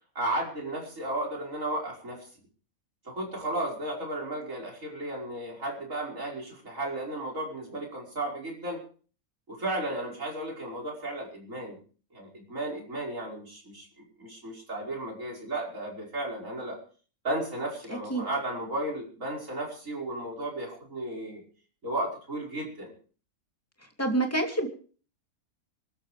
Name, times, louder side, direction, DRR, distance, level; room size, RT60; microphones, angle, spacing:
voice 1, 0.2-2.3 3.1-8.8 9.5-11.8 12.1-16.8 17.2-21.4 21.8-22.9, right 1 dB, 60° right, -1 dB, 5.7 m, -34 dB
voice 2, 24.0-24.7, right 2 dB, 10° left, 3 dB, 2.6 m, -26 dB
25.5 x 13.5 x 3.4 m, 0.41 s
omnidirectional pair, 1.5 m